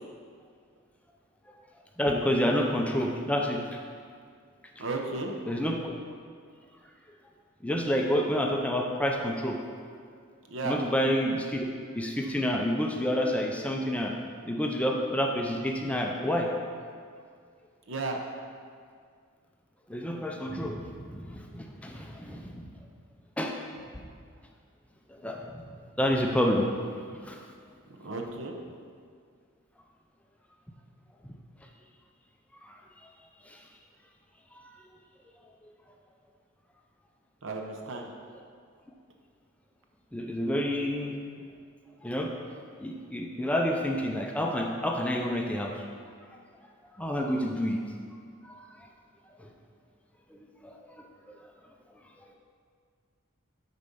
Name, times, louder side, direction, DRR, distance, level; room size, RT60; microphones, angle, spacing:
voice 1, 2.0-3.6 5.5-5.9 7.6-9.6 10.6-11.7 11.9-14.1 14.5-16.5 19.9-22.7 23.4-23.6 25.1-25.6 26.0-26.7 27.2-27.4 31.2-31.3 32.6-32.8 33.4-33.6 40.1-41.1 42.0-42.3 42.8-45.7 47.0-47.8 48.4-48.6 49.4-49.5 50.6-51.0, equal, 5° left, 1 dB, 0.5 m, -29 dB
voice 2, 4.8-5.3 10.5-10.8 17.9-18.2 28.0-28.5 37.4-38.1, right 3 dB, 65° right, 2 dB, 0.9 m, -34 dB
8.1 x 4.3 x 5.4 m, 2.1 s
head